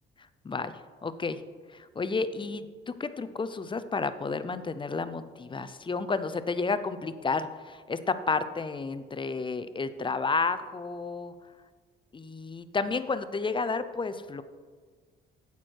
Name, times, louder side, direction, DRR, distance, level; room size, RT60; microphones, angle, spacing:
voice 1, 0.4-1.4 1.7-11.3 12.1-14.4, left 4 dB, 25° left, 12 dB, 0.5 m, -31 dB
8.7 x 8.2 x 4.6 m, 1.5 s
cardioid pair, 90°, 20 cm